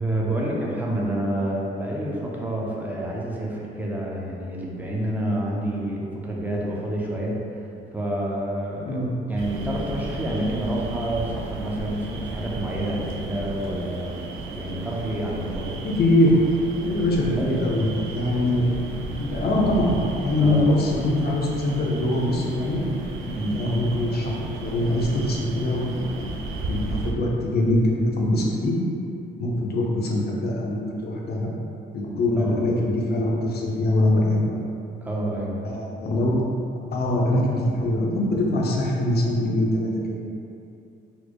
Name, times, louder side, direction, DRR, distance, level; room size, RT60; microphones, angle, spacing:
voice 1, 0.0-7.4 7.9-14.2 14.5-15.8 17.3-17.5 20.4-20.6 23.3-23.6 32.4-32.6 35.0-35.5, right 1 dB, 10° right, -3 dB, 0.6 m, -28 dB
sound 1, 9.4-27.1, right 3 dB, 85° right, 0.4 m, -34 dB
voice 2, 15.8-16.3 16.8-18.7 19.2-22.8 23.2-24.3 24.6-26.4 26.7-28.7 29.4-31.6 31.9-34.6 35.6-36.5 36.9-40.2, left 1 dB, 55° left, -2 dB, 0.6 m, -23 dB
4.2 x 2.0 x 3.0 m, 2.6 s
cardioid pair, 90°, 20 cm